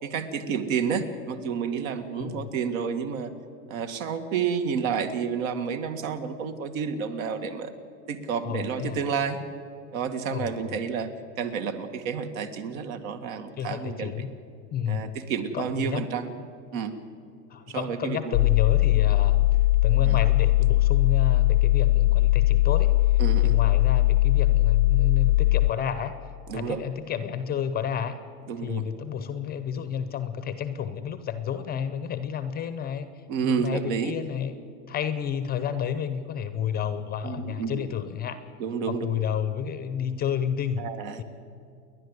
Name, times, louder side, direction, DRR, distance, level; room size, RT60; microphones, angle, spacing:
voice 1, 0.0-3.3 3.7-7.7 8.1-9.4 9.9-11.1 11.4-14.2 14.9-16.3 16.7-17.0 17.7-18.4 20.0-20.2 23.2-23.6 26.5-26.8 28.5-28.8 33.3-34.1 37.2-37.9 38.6-39.1 40.8-41.2, right 6 dB, 55° right, 8 dB, 2.0 m, -30 dB
voice 2, 2.1-2.5 8.4-9.0 10.3-10.8 13.6-14.3 14.7-15.2 15.5-16.1 17.5-19.4 19.8-22.9 23.4-26.2 26.5-28.2 28.6-34.5 34.9-38.4 38.9-40.8 41.2-41.3, left 8 dB, 20° left, 11 dB, 0.8 m, -31 dB
sound 1, 18.3-25.7, left 17 dB, 60° left, 0.6 m, -20 dB
29.5 x 11.0 x 8.1 m, 2.5 s
hypercardioid pair, 135°, 47 cm